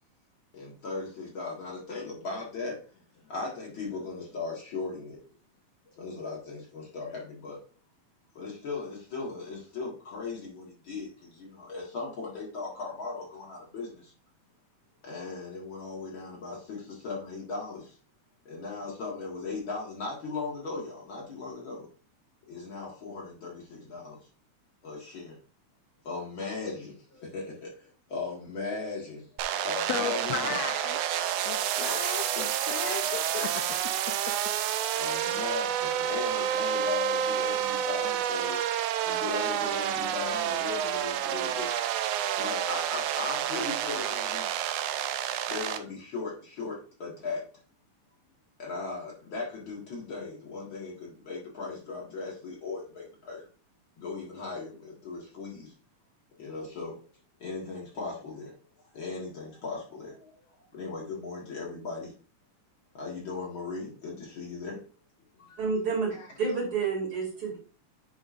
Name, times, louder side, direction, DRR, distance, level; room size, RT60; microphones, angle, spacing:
voice 1, 0.5-2.8 3.3-5.2 5.9-7.6 8.4-14.1 15.0-17.9 18.5-21.9 22.5-24.2 24.8-25.4 26.0-29.3 29.6-30.6 35.0-38.6 39.0-41.7 42.4-44.5 45.5-47.4 48.6-53.5 54.0-55.7 56.4-57.0 57.4-58.5 58.9-60.3 60.7-62.1 62.9-64.8 65.4-65.6 66.2-66.3, left 3 dB, 45° left, -3 dB, 2.0 m, -37 dB
sound 1, 29.4-45.8, right 10 dB, 85° right, 1.4 m, -29 dB
voice 2, 29.9-31.0 31.4-34.0, left 8 dB, 80° left, 6 dB, 1.6 m, -35 dB
voice 3, 65.6-66.1 66.4-67.6, right 5 dB, 45° right, -1 dB, 3.2 m, -29 dB
9.5 x 5.1 x 2.5 m, 0.38 s
omnidirectional pair, 3.5 m